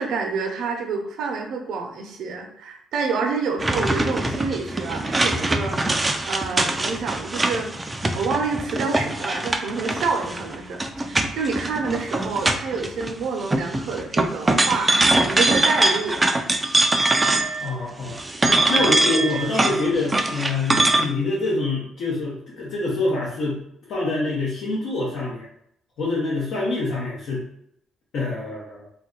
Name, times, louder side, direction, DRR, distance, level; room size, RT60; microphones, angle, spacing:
voice 1, 0.0-7.7 8.1-16.2, right 4 dB, 75° right, 2 dB, 0.6 m, -28 dB
sound 1, 3.6-13.1 13.4-17.7 18.0-21.1, right 2 dB, 20° right, 0.3 m, -22 dB
voice 2, 17.6-18.2 18.4-23.6 23.9-25.5 26.0-27.4 28.1-28.9, left 2 dB, 70° left, -5 dB, 0.8 m, -26 dB
2.4 x 2.2 x 3.8 m, 0.71 s
cardioid pair, 105°, 0 cm